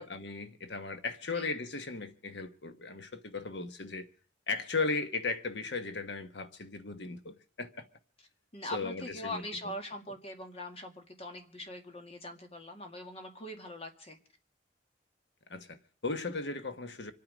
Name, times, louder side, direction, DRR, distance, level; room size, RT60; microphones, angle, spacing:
voice 1, 0.0-4.1 4.5-7.9 8.7-9.4 15.5-17.1, left 3 dB, 65° left, 1.2 m, -36 dB
voice 2, 8.5-14.2, left 1 dB, 35° left, 2.2 m, -42 dB
26.5 x 9.5 x 5.1 m
head